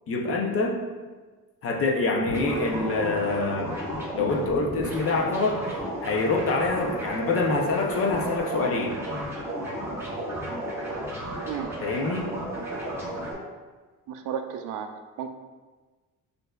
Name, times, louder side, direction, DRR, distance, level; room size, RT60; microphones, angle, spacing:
voice 1, 0.1-0.8 1.6-3.7 4.1-5.6 6.0-9.0 11.8-12.3, left 3 dB, 45° left, 0 dB, 0.6 m, -25 dB
sound 1, 2.2-13.3, right 1 dB, 10° right, 0.8 m, -33 dB
voice 2, 11.5-11.8 14.1-14.9 15.2-15.3, right 8 dB, 70° right, 7 dB, 0.5 m, -33 dB
6.3 x 2.6 x 2.3 m, 1.3 s
cardioid pair, 160°, 32 cm